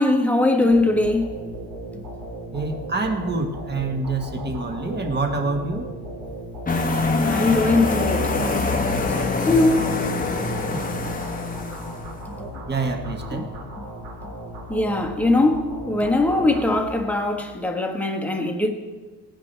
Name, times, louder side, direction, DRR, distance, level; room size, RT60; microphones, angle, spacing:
voice 1, 0.0-1.4 7.2-8.4 9.1-10.1 10.7-10.8 12.3-12.4 13.3-13.4 13.8-13.9 14.7-18.7, left 2 dB, 5° left, 1.3 m, -21 dB
sound 1, 0.7-17.3, equal, 80° right, 4.5 m, -36 dB
voice 2, 2.5-5.8 12.7-13.5, right 3 dB, 25° right, 1.5 m, -26 dB
sound 2, 6.7-12.2, left 3 dB, 20° left, 1.1 m, -24 dB
17.5 x 10.5 x 3.3 m
cardioid pair, 110°, 43 cm